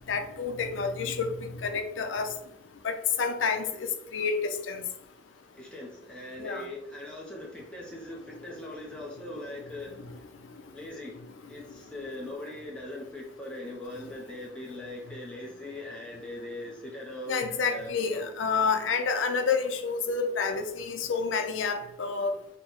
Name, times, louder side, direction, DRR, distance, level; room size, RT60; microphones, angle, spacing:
voice 1, 0.1-2.3 2.8-4.9 6.4-6.7 17.3-22.4, left 5 dB, 80° left, 0.5 m, -29 dB
voice 2, 5.5-10.1 10.7-11.2 11.5-18.6, left 1 dB, 5° left, 0.6 m, -41 dB
3.9 x 2.1 x 4.3 m
head